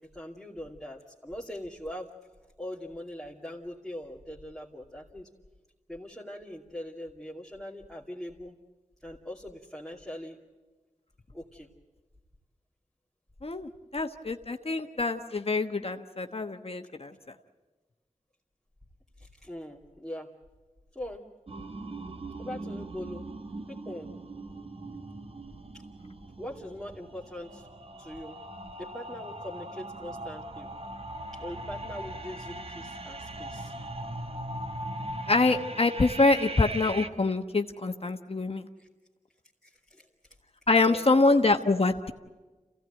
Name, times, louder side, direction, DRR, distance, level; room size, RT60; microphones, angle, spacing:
voice 1, 0.1-2.1 2.6-5.3 5.9-8.5 9.0-10.4 11.3-11.7 19.2-20.3 20.9-21.2 22.4-23.3 23.7-24.1 25.7-25.8 26.4-27.7 28.0-28.4 28.8-30.7 31.3-33.7 39.6-40.1 40.8-41.2, left 1 dB, ahead, -4 dB, 2.6 m, -41 dB
voice 2, 13.4-17.1 35.3-38.7 40.7-42.1, left 3 dB, 50° left, 5 dB, 1.1 m, -25 dB
sound 1, 21.5-37.1, right 1 dB, 45° right, 1.2 m, -40 dB
27.0 x 16.5 x 9.1 m, 1.3 s
wide cardioid pair, 50°, 13 cm